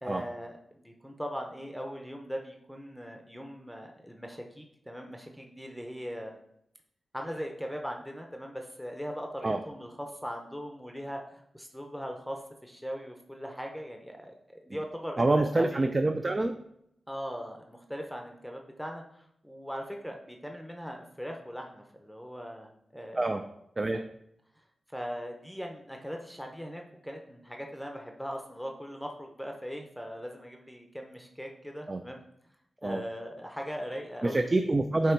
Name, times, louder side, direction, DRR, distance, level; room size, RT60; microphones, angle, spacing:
voice 1, 0.0-6.4 7.1-15.9 17.1-23.3 24.9-32.2 32.8-34.4, equal, ahead, 2 dB, 0.7 m, -40 dB
voice 2, 15.2-16.5 23.2-23.4 23.8-24.0 31.9-32.0 32.8-33.0 34.2-35.1, right 2 dB, 30° right, 6 dB, 0.4 m, -26 dB
7.9 x 2.9 x 4.6 m, 0.74 s
wide cardioid pair, 100°, 0 cm